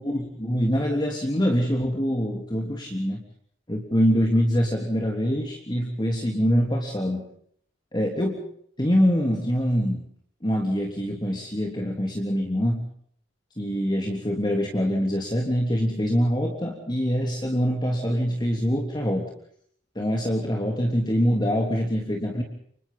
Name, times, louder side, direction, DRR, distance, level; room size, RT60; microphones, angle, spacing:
voice 1, 0.0-3.2 3.7-7.2 7.9-8.4 8.8-10.0 10.4-12.8 13.6-19.3 19.9-22.4, equal, 25° left, 0 dB, 3.2 m, -24 dB
29.5 x 26.5 x 3.9 m, 0.65 s
head